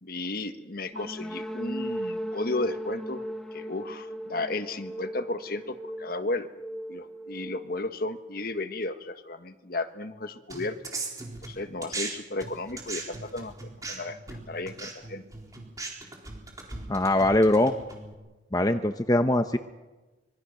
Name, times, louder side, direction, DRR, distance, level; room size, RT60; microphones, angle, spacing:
voice 1, 0.0-3.2 3.5-6.5 6.9-10.8 11.4-13.5 13.8-14.2 14.5-15.2, left 2 dB, 50° left, 9 dB, 1.5 m, -34 dB
sound 1, 0.9-8.6, right 1 dB, 5° left, 2.2 m, -38 dB
sound 2, 10.5-12.1 12.4-18.1, right 3 dB, 20° right, 4.1 m, -38 dB
voice 2, 16.9-17.7 18.5-19.6, left 1 dB, 20° left, 7 dB, 0.8 m, -22 dB
25.5 x 23.0 x 6.6 m, 1.2 s
head